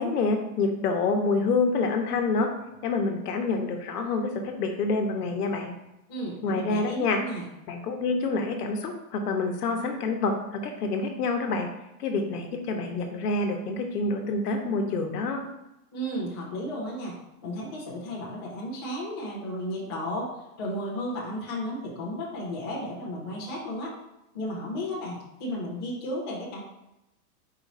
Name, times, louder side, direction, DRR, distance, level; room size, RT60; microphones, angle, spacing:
voice 1, 0.0-2.5 2.8-5.7 6.4-7.2 7.7-11.7 12.0-15.4, left 3 dB, 75° left, 4 dB, 1.0 m, -27 dB
voice 2, 6.1-7.5 15.9-20.3 20.6-23.9 24.3-26.6, equal, 20° left, -7 dB, 0.3 m, -34 dB
4.6 x 2.5 x 4.0 m, 0.90 s
supercardioid pair, 160°, 46 cm